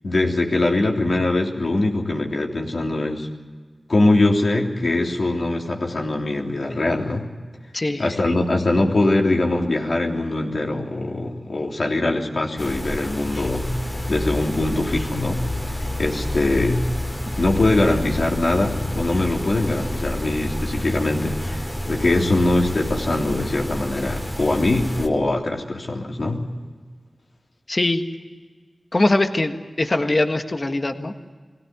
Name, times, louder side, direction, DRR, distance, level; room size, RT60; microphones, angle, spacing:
voice 1, 0.0-3.3 3.9-7.3 8.0-15.4 15.8-16.8 17.4-26.5, left 2 dB, 65° left, 0 dB, 3.3 m, -22 dB
voice 2, 7.7-8.1 27.7-28.0 28.9-31.1, left 2 dB, 45° left, 6 dB, 1.7 m, -21 dB
sound 1, 12.6-25.1, left 1 dB, 20° left, 2.8 m, -29 dB
22.0 x 17.0 x 9.4 m, 1.5 s
cardioid pair, 45°, 0 cm